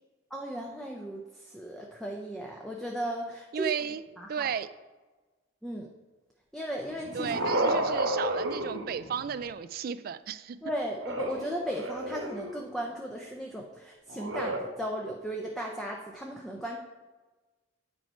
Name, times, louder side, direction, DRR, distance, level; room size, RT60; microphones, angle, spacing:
voice 1, 0.3-3.7 4.2-4.5 5.6-5.9 6.5-7.7 10.6-16.8, equal, ahead, -1 dB, 0.6 m, -36 dB
voice 2, 3.5-4.0 4.3-4.7 7.1-10.6, right 7 dB, 50° right, 14 dB, 0.3 m, -33 dB
sound 1, 6.8-9.4 10.9-12.7 14.1-14.6, right 1 dB, 90° right, 1.2 m, -32 dB
9.3 x 4.4 x 4.4 m, 1.3 s
head